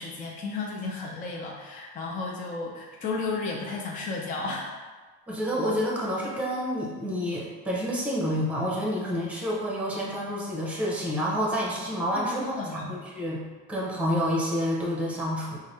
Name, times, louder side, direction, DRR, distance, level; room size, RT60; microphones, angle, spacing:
voice 1, 0.0-4.7 12.1-12.9, left 3 dB, 20° left, -2 dB, 0.4 m, -33 dB
voice 2, 5.3-13.4 13.7-15.6, equal, 5° right, -4 dB, 0.8 m, -28 dB
4.7 x 2.2 x 3.2 m, 1.3 s
cardioid pair, 120°, 39 cm